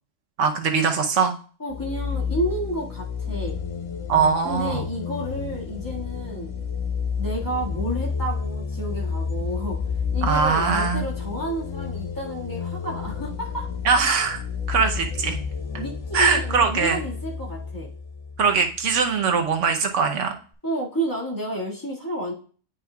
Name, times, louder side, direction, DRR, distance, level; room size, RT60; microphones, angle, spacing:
voice 1, 0.4-1.3 4.1-4.9 10.2-11.1 13.8-14.4 14.7-15.4 16.1-17.0 18.4-20.3, right 5 dB, 75° right, 5 dB, 1.1 m, -21 dB
voice 2, 1.6-3.6 4.4-6.5 7.2-9.8 10.1-13.7 15.8-17.9 20.6-22.3, right 1 dB, 15° left, -4 dB, 1.8 m, -30 dB
sound 1, 1.7-19.1, left 5 dB, 40° left, 0.5 m, -30 dB
9.8 x 5.0 x 2.3 m, 0.41 s
omnidirectional pair, 1.3 m